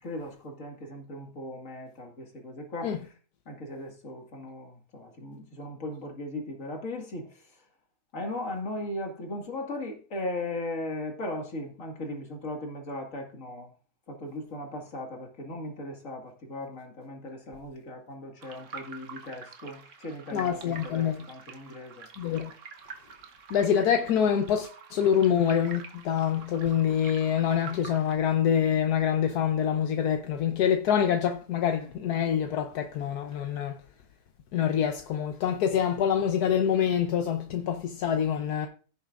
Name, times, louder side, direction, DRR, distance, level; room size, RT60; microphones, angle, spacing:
voice 1, 0.0-2.9 3.5-7.6 8.1-13.7 14.1-22.1, left 1 dB, 55° left, 2.4 m, -38 dB
sound 1, 18.4-28.2, right 5 dB, 55° right, 1.3 m, -47 dB
voice 2, 20.3-21.2 22.2-22.5 23.5-33.8 34.5-38.7, left 8 dB, 80° left, 1.3 m, -26 dB
16.0 x 6.9 x 2.5 m
omnidirectional pair, 1.6 m